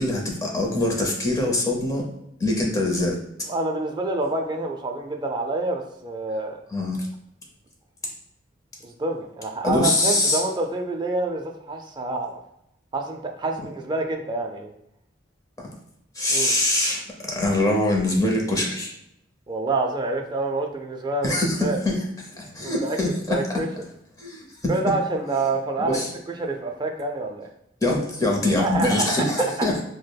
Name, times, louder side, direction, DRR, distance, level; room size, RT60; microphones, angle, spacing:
voice 1, 0.0-2.1 2.4-3.2 6.7-7.1 9.6-10.4 15.6-15.7 16.2-17.0 17.3-18.9 21.2-22.0 22.3-23.6 24.2-24.7 25.8-26.1 27.8-29.8, left 1 dB, 20° left, -1 dB, 0.7 m, -23 dB
voice 2, 3.5-6.6 8.8-12.4 12.9-14.7 16.3-16.5 19.5-21.8 22.6-23.0 23.3-23.7 24.7-26.0 26.3-27.5 28.5-29.7, right 2 dB, 25° right, 2 dB, 0.4 m, -27 dB
4.9 x 2.1 x 2.3 m, 0.80 s
head